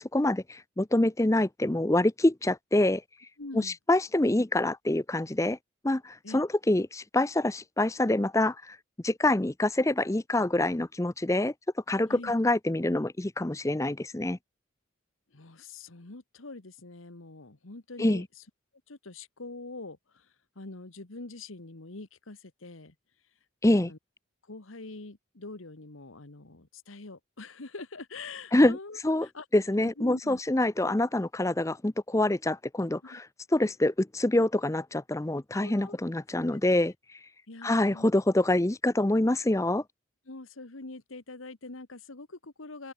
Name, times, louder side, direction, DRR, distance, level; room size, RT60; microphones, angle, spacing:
voice 1, 0.0-3.0 3.5-5.6 5.8-8.8 9.0-11.5 11.9-14.4 18.0-18.2 23.6-23.9 28.5-28.8 29.0-29.3 29.5-33.2 33.5-36.9 37.6-39.8, left 1 dB, 15° left, 0.6 m, -26 dB
voice 2, 3.4-3.8 6.2-6.4 12.1-12.3 15.3-18.3 18.9-20.3 20.5-22.9 23.8-24.0 24.5-29.5 30.0-30.4 33.0-33.2 35.5-36.0 37.5-38.1 40.3-42.9, left 3 dB, 85° left, 1.6 m, -44 dB
open air
head